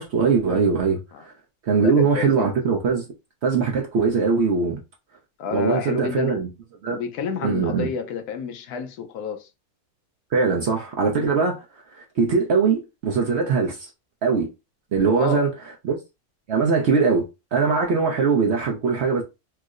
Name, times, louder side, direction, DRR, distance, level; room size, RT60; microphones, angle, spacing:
voice 1, 0.0-1.3 1.6-3.0 3.4-4.8 5.5-6.5 6.8-7.0 7.4-7.9 10.3-11.6 11.9-13.9 14.2-14.5 14.9-15.5 15.8-16.0 16.5-19.2, right 5 dB, 65° right, 0.7 m, -21 dB
voice 2, 1.8-2.5 5.4-6.4 6.9-9.5 15.0-15.4, left 5 dB, 80° left, 1.1 m, -29 dB
4.5 x 2.0 x 2.4 m
omnidirectional pair, 1.6 m